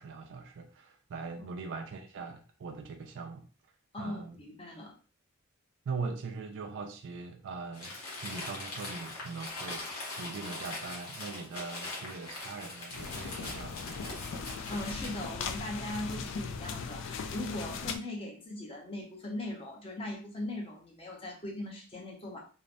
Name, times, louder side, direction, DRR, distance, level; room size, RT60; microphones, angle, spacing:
voice 1, 0.0-3.5 4.0-4.4 5.9-9.9 10.2-14.3, right 4 dB, 60° right, 4 dB, 0.3 m, -41 dB
voice 2, 3.9-4.9 14.7-22.4, left 1 dB, 25° left, 0 dB, 0.7 m, -39 dB
Crumpling crinkling, 7.7-15.3, left 2 dB, 80° left, 1.1 m, -42 dB
sound 1, 12.9-18.0, left 5 dB, 60° left, 0.3 m, -39 dB
3.1 x 2.0 x 2.5 m, 0.38 s
head